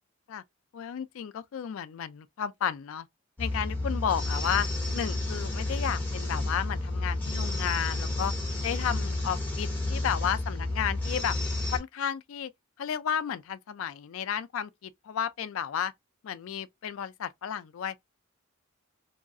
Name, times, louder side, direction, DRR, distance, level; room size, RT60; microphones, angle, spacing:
voice 1, 0.7-3.1 3.4-4.7 4.9-8.3 8.6-11.4 11.7-12.5 12.8-15.9 16.2-18.0, left 8 dB, 70° left, 0.3 m, -32 dB
sound 1, 3.4-11.8, left 2 dB, 10° left, 0.9 m, -31 dB
2.7 x 2.3 x 2.6 m
head